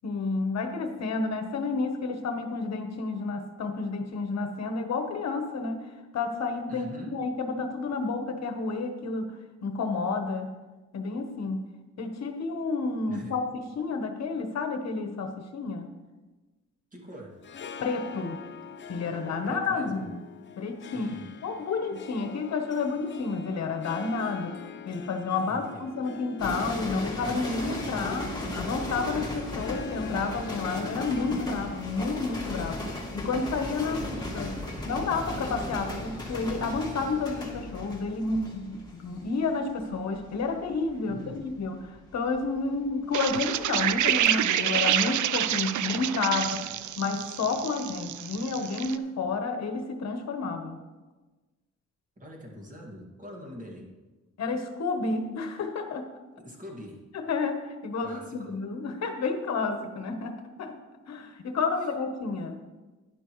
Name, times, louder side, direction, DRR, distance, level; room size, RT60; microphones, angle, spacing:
voice 1, 0.0-5.9 6.1-9.3 9.6-10.6 10.9-11.7 12.0-15.9 17.8-18.4 18.9-20.1 20.6-21.1 21.4-32.8 33.1-34.0 34.3-50.8 54.4-56.1 57.1-60.8 61.1-62.6, left 4 dB, 65° left, 6 dB, 1.1 m, -30 dB
voice 2, 6.7-7.2 13.1-13.3 16.9-17.3 19.4-20.1 20.9-21.3 25.5-25.8 33.8-34.1 41.0-41.4 52.2-53.9 56.4-57.0 58.0-58.5 61.8-61.9, equal, 25° right, -1 dB, 2.0 m, -43 dB
Harp, 17.3-36.7, left 5 dB, 40° left, 0.6 m, -44 dB
sound 1, 26.4-43.6 43.9-44.3, left 1 dB, 15° left, 1.8 m, -37 dB
sound 2, 43.1-49.0, right 11 dB, 80° right, 0.5 m, -28 dB
12.0 x 10.0 x 3.1 m, 1.2 s
wide cardioid pair, 145°, 29 cm